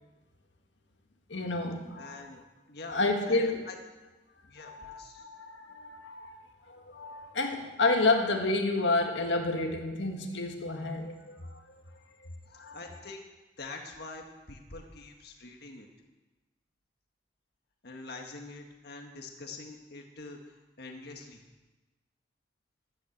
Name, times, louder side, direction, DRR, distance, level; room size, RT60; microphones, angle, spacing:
voice 1, 1.3-2.3 2.9-3.6 4.6-6.4 6.7-11.6 12.5-12.8, left 2 dB, 85° left, 3 dB, 1.9 m, -30 dB
voice 2, 2.0-2.4 2.7-3.7 4.4-5.3 12.7-13.2 13.6-15.9 17.8-21.4, left 3 dB, 60° left, 2 dB, 1.7 m, -45 dB
13.0 x 12.0 x 8.1 m, 1.2 s
head